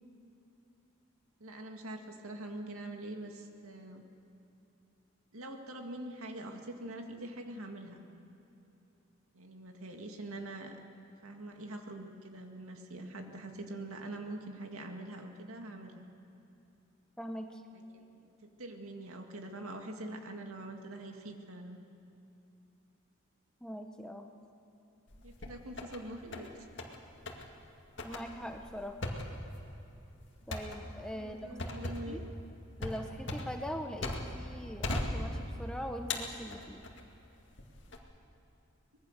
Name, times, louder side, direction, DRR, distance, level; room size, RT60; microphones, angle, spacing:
voice 1, 1.4-4.1 5.3-8.0 9.3-10.8 11.2-16.1 17.7-18.1 18.6-21.8 25.2-26.5 31.1-32.2, right 1 dB, 90° right, 4 dB, 2.1 m, -44 dB
voice 2, 17.2-17.6 23.6-24.3 28.0-29.0 30.5-32.2 32.8-36.8, equal, 5° left, 4 dB, 1.0 m, -42 dB
sound 1, 25.1-26.0 26.3-27.0 27.3-27.5 28.0-34.5 34.8-35.7 36.1-37.0 37.6-38.0, left 2 dB, 55° left, 2.2 m, -38 dB
24.5 x 20.5 x 6.7 m, 2.9 s
head